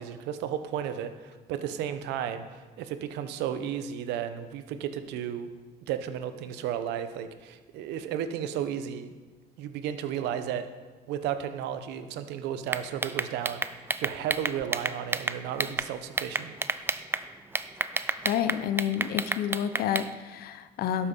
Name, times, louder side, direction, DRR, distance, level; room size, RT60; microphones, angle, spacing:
voice 1, 0.0-5.5 5.8-9.1 9.6-10.7 11.1-16.5, right 9 dB, 90° right, 10 dB, 0.8 m, -33 dB
sound 1, 12.7-15.9 16.2-17.2 17.5-20.1, right 3 dB, 15° right, 0.4 m, -29 dB
voice 2, 18.2-21.1, left 9 dB, 65° left, 11 dB, 0.6 m, -29 dB
12.0 x 7.1 x 5.3 m, 1.4 s
cardioid pair, 110°, 17 cm